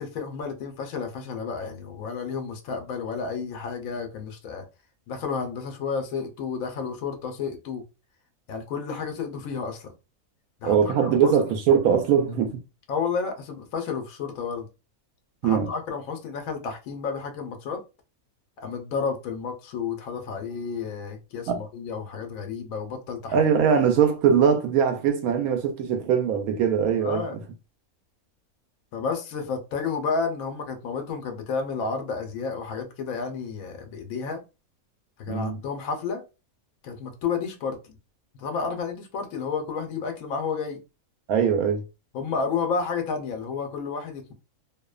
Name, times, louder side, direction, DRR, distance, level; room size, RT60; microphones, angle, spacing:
voice 1, 0.0-4.6 5.1-7.8 8.5-9.9 10.6-11.5 12.9-14.7 15.4-17.8 18.6-23.3 27.0-27.3 28.9-34.4 35.2-36.2 36.8-38.0 38.3-40.8 42.1-44.3, left 5 dB, 75° left, 1.1 m, -31 dB
voice 2, 10.6-12.6 15.4-15.7 21.5-21.6 23.3-27.2 35.3-35.6 41.3-41.8, right 7 dB, 85° right, 1.0 m, -21 dB
2.7 x 2.1 x 2.3 m
omnidirectional pair, 1.5 m